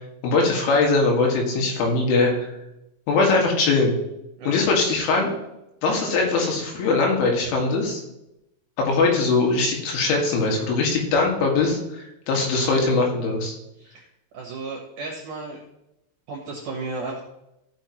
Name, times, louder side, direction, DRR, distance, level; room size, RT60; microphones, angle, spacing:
voice 1, 0.2-2.5 3.1-3.9 4.5-5.3 5.8-8.0 8.8-13.6, left 3 dB, 90° left, 0 dB, 4.4 m, -21 dB
voice 2, 14.3-15.6 16.3-17.2, right 3 dB, 70° right, 0 dB, 1.9 m, -33 dB
15.0 x 6.3 x 3.1 m, 0.87 s
omnidirectional pair, 5.4 m